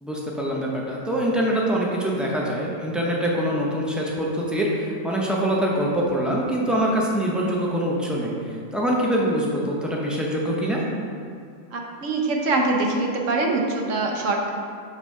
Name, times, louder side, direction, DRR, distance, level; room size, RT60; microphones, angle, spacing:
voice 1, 0.0-8.3 8.7-10.8, equal, ahead, -4 dB, 0.3 m, -24 dB
voice 2, 11.7-14.5, right 2 dB, 60° right, 1 dB, 1.1 m, -23 dB
6.0 x 4.2 x 5.5 m, 2.3 s
omnidirectional pair, 1.6 m